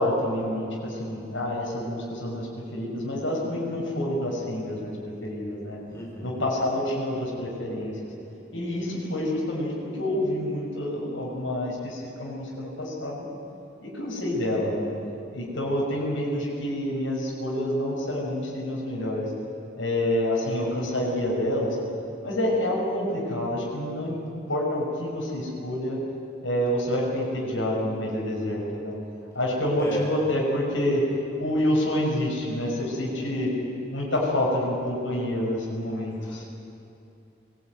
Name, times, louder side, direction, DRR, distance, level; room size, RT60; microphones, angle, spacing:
voice 1, 0.0-4.9 5.2-5.8 6.2-8.1 8.5-13.2 13.8-14.9 15.3-19.3 19.8-21.8 22.2-24.1 24.5-26.0 26.4-29.0 29.3-31.0 31.4-33.5 33.9-36.5, left 1 dB, 85° left, -4 dB, 6.2 m, -28 dB
voice 2, 5.9-6.4 29.8-30.1 36.2-36.4, left 1 dB, 15° left, -1 dB, 4.1 m, -33 dB
22.5 x 16.0 x 9.4 m, 2.8 s
head